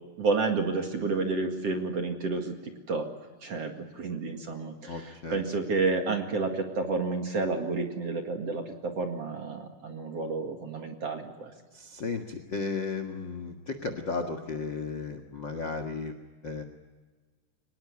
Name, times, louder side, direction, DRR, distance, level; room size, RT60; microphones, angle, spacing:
voice 1, 0.2-2.5 2.9-3.1 3.4-11.5, right 3 dB, 45° right, 4 dB, 2.4 m, -30 dB
voice 2, 4.9-5.4 11.7-16.1 16.4-16.6, left 4 dB, 70° left, 8 dB, 1.0 m, -34 dB
24.0 x 20.5 x 9.8 m, 1.3 s
omnidirectional pair, 5.0 m